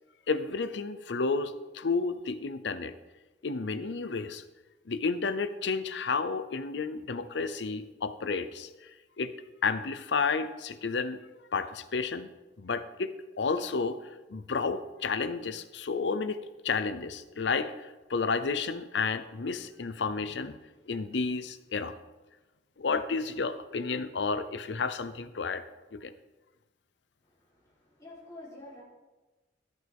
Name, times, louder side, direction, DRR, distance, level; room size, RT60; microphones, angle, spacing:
voice 1, 0.3-3.0 3.4-4.4 4.9-8.7 9.2-9.3 9.6-11.2 11.5-12.3 12.6-13.1 13.4-14.0 14.3-16.4 16.6-20.6 20.9-22.0 22.8-25.6 25.9-26.1, left 4 dB, 85° left, 13 dB, 0.6 m, -31 dB
voice 2, 27.2-28.8, left 1 dB, 20° left, -8 dB, 3.5 m, -49 dB
13.5 x 9.5 x 3.5 m, 1.2 s
head